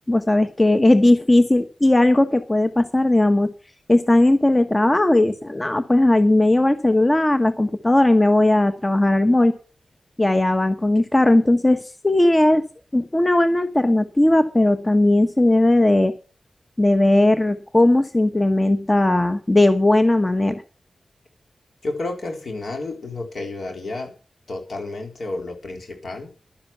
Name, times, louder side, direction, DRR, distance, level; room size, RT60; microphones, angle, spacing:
voice 1, 0.1-3.5 3.9-9.5 10.2-12.6 12.9-16.1 16.8-20.6, left 1 dB, 25° left, 9 dB, 1.1 m, -17 dB
voice 2, 21.8-24.1 24.5-26.3, left 2 dB, 75° left, 3 dB, 3.8 m, -31 dB
11.5 x 10.0 x 6.0 m, 0.37 s
cardioid pair, 45°, 0 cm